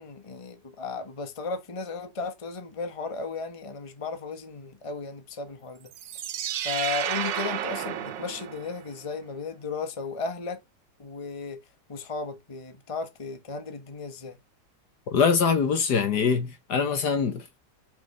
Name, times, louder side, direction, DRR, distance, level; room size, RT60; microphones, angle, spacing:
voice 1, 0.0-5.9 6.6-10.6 11.0-11.6 11.9-14.4, left 4 dB, 20° left, 1.1 m, -35 dB
sound 1, 5.9-9.0, right 10 dB, 75° right, 1.4 m, -32 dB
voice 2, 15.1-17.6, left 6 dB, 65° left, 1.7 m, -23 dB
5.6 x 5.4 x 5.5 m
omnidirectional pair, 2.0 m